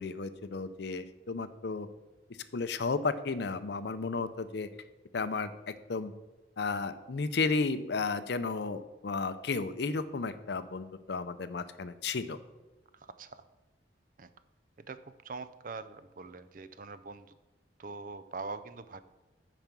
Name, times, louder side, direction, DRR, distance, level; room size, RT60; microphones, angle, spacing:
voice 1, 0.0-1.9 2.5-4.7 5.1-6.1 6.6-12.4, left 4 dB, 60° left, 12 dB, 0.5 m, -33 dB
voice 2, 12.9-13.4 14.2-14.3 14.9-17.3 17.8-19.0, right 4 dB, 45° right, 12 dB, 0.4 m, -43 dB
9.0 x 5.1 x 6.0 m, 1.1 s
head